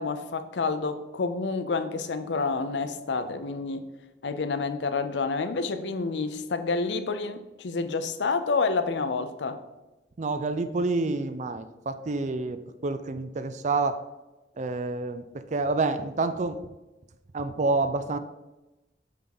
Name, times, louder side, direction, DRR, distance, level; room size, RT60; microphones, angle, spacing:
voice 1, 0.0-3.8 4.2-9.6, left 4 dB, 85° left, 10 dB, 0.6 m, -29 dB
voice 2, 10.2-14.0 14.6-16.6 17.3-18.2, right 3 dB, 45° right, 11 dB, 0.5 m, -28 dB
7.5 x 3.6 x 5.9 m, 1.0 s
head